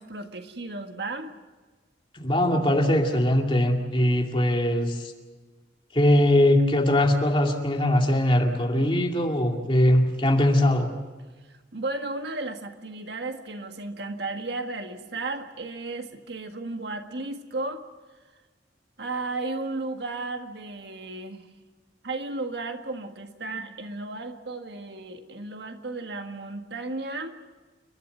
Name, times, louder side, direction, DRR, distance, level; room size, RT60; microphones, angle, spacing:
voice 1, 0.0-1.4 11.5-17.8 19.0-21.5 22.0-27.4, right 2 dB, 65° right, 5 dB, 1.7 m, -34 dB
voice 2, 2.1-5.1 5.9-10.9, left 1 dB, 30° left, 2 dB, 2.3 m, -21 dB
29.5 x 12.0 x 9.3 m, 1.3 s
head